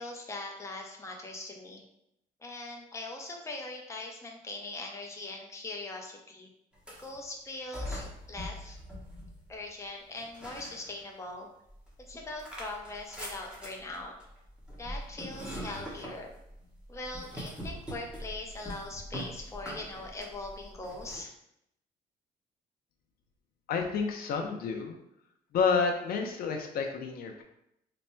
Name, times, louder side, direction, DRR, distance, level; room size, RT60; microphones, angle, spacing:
voice 1, 0.0-1.8 2.4-6.5 7.0-8.8 9.5-11.5 12.1-14.1 14.8-16.3 16.9-21.3, left 2 dB, 20° left, 0 dB, 0.6 m, -41 dB
sound 1, 6.7-7.2 7.7-9.7 10.2-11.3 11.7-21.2, equal, 5° right, 1.0 m, -43 dB
voice 2, 23.7-25.0 25.5-27.4, left 5 dB, 70° left, 3 dB, 0.5 m, -29 dB
3.4 x 2.1 x 4.3 m, 0.79 s
cardioid pair, 115°, 16 cm